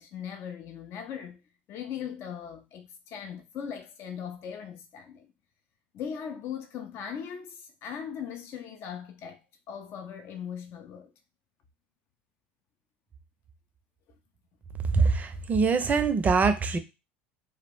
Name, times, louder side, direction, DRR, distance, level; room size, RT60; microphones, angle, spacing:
voice 1, 0.0-1.4 1.7-5.3 5.9-9.4 9.7-11.1 14.8-15.1, left 8 dB, 50° left, 0.4 m, -39 dB
voice 2, 14.9-16.8, right 4 dB, 25° right, 0.5 m, -23 dB
2.4 x 2.0 x 3.4 m
hypercardioid pair, 75°, 6 cm